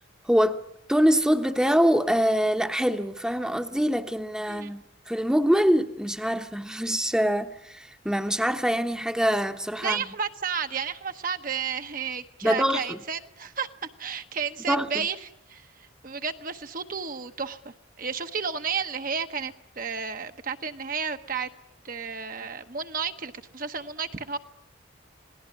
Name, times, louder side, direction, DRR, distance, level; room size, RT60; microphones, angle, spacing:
voice 1, 0.3-10.0 12.4-13.0 14.7-14.9, equal, 5° right, 1.0 m, -24 dB
voice 2, 9.8-13.7 14.0-21.5 21.8-24.4, right 6 dB, 45° right, 1.0 m, -32 dB
27.5 x 19.0 x 9.7 m
head